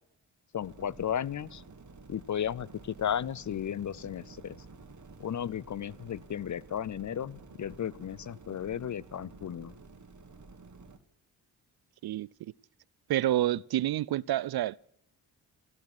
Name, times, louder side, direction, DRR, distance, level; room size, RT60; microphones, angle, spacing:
voice 1, 0.5-1.6 2.1-4.6 5.2-9.7, left 9 dB, 40° left, 0.5 m, -34 dB
sound 1, 0.6-11.0, right 3 dB, 35° right, 1.9 m, -51 dB
voice 2, 13.1-14.8, right 13 dB, 55° right, 0.5 m, -28 dB
14.0 x 12.5 x 6.0 m
supercardioid pair, 40°, 48 cm